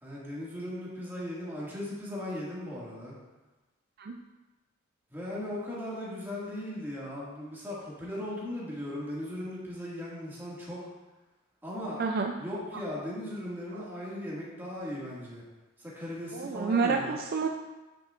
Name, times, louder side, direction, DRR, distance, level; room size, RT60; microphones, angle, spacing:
voice 1, 0.0-3.1 5.1-10.8 11.6-12.0 12.4-15.4 15.8-17.2, left 1 dB, 10° right, -7 dB, 2.0 m, -38 dB
voice 2, 12.0-12.3 13.7-13.8 16.3-17.5, right 4 dB, 45° right, 3 dB, 0.4 m, -29 dB
8.9 x 6.4 x 2.5 m, 1.1 s
head